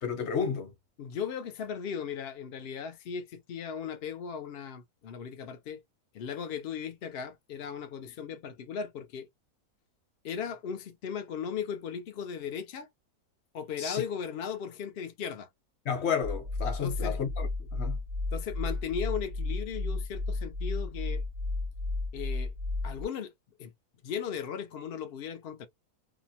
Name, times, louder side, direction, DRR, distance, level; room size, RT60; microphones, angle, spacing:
voice 1, 0.0-0.7 13.8-14.0 15.8-18.0, left 7 dB, 50° left, 1.0 m, -32 dB
voice 2, 1.0-5.8 6.1-9.3 10.2-12.9 13.5-15.5 16.8-17.2 18.3-21.2 22.1-22.5 22.8-23.3 23.6-23.7 24.0-25.7, left 7 dB, 75° left, 0.5 m, -37 dB
sound 1, 16.2-23.0, left 2 dB, 50° right, 0.6 m, -33 dB
2.7 x 2.0 x 2.7 m
omnidirectional pair, 1.6 m